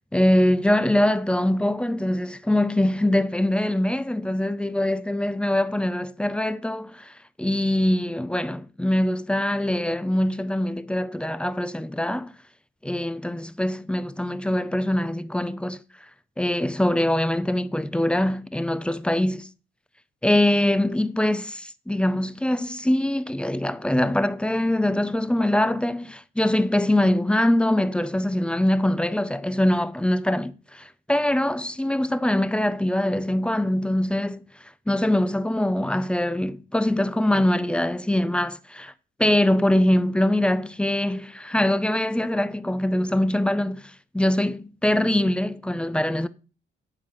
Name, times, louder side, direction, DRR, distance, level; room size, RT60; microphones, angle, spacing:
voice 1, 0.1-7.1 7.4-12.3 12.8-15.8 16.4-19.5 20.2-38.9 39.2-46.3, left 1 dB, 5° left, 0.6 m, -23 dB
10.5 x 4.7 x 5.6 m
cardioid pair, 90°, 20 cm